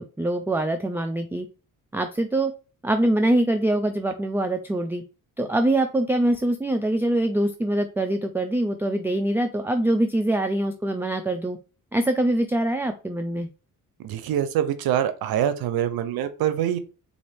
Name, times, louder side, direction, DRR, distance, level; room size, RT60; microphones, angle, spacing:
voice 1, 0.0-1.5 1.9-2.5 2.8-5.0 5.4-11.6 11.9-13.5, right 1 dB, 5° right, 6 dB, 0.4 m, -24 dB
voice 2, 14.0-16.8, right 10 dB, 85° right, 11 dB, 0.6 m, -25 dB
4.2 x 2.6 x 3.2 m, 0.33 s
cardioid pair, 70°, 35 cm